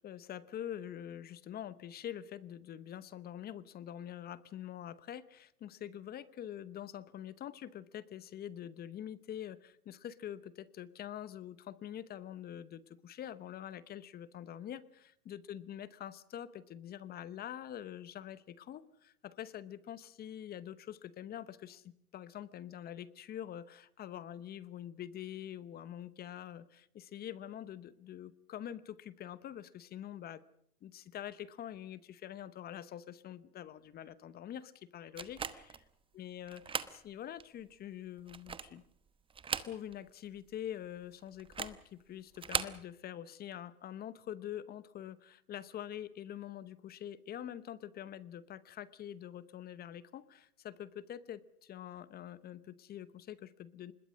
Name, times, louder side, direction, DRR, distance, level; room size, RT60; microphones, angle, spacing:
voice 1, 0.0-30.4 30.8-35.8 36.1-38.8 39.6-53.9, left 10 dB, 20° left, 17 dB, 0.9 m, -45 dB
sound 1, 35.2-35.8 36.5-37.0 37.4-37.5 38.2-38.8 39.3-40.1 40.4-40.5 41.4-41.8 42.3-42.8, right 6 dB, 10° right, 1.0 m, -38 dB
25.0 x 21.0 x 6.3 m, 0.72 s
hypercardioid pair, 125°, 44 cm